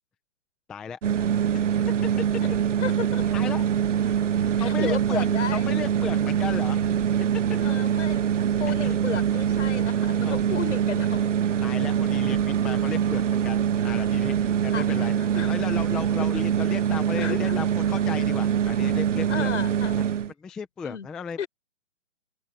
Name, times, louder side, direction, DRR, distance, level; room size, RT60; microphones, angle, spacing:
voice 1, 0.7-1.0 1.5-1.7 3.3-3.7 4.6-5.3 5.5-6.8 8.8-9.0 10.2-10.6 11.6-15.2 15.4-19.5 20.4-21.4, left 6 dB, ahead, 0.4 m, -35 dB
sound 1, 1.0-20.3, right 8 dB, 70° right, 1.7 m, -24 dB
voice 2, 2.8-3.4 4.6-5.7 7.6-8.2 8.6-11.3 14.7-14.9 15.2-15.5 17.2-17.6 19.3-20.0 20.8-21.1 21.4-21.5, left 7 dB, 65° left, 5.9 m, -33 dB
Screaming, 11.7-14.4, right 28 dB, 25° right, 6.3 m, -51 dB
open air
hypercardioid pair, 145°, 39 cm